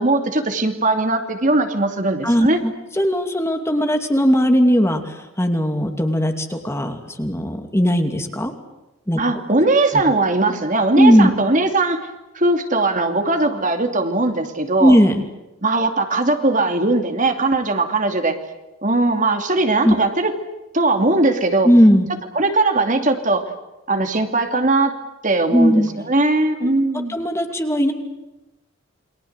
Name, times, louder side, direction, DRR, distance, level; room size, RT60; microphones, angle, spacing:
voice 1, 0.0-2.6 9.2-12.1 12.3-15.0 15.6-18.4 18.8-20.3 20.7-21.7 22.3-23.5 23.9-24.9 25.2-27.2, right 2 dB, 40° right, 6 dB, 2.7 m, -19 dB
voice 2, 2.2-8.5 9.1-9.2 9.9-10.0 10.9-11.3 14.8-15.2 19.8-19.9 21.6-22.1 25.5-25.9 26.6-26.7 27.1-27.9, equal, 15° left, 5 dB, 2.6 m, -17 dB
29.0 x 24.0 x 8.1 m, 0.99 s
head